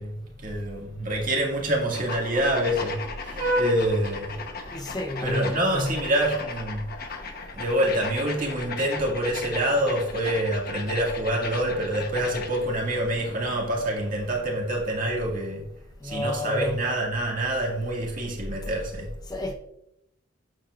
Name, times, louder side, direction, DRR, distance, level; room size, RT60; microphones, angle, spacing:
voice 1, 0.0-4.4 5.2-6.9 7.5-15.6 16.0-19.1, right 1 dB, 45° right, 2.0 m, -26 dB
sound 1, 1.9-12.7, left 4 dB, 50° left, 1.0 m, -37 dB
voice 2, 4.7-6.0 16.0-16.8 19.3-19.5, left 1 dB, 20° left, 0.8 m, -30 dB
8.8 x 7.2 x 2.4 m
head